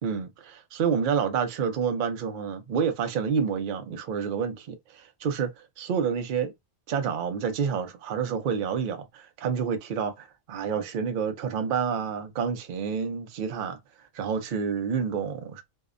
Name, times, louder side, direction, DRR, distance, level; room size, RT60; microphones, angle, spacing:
voice 1, 0.0-6.5 6.9-13.8 14.1-15.6, right 6 dB, 55° right, 0.5 m, -29 dB
2.7 x 2.1 x 2.4 m
omnidirectional pair, 1.3 m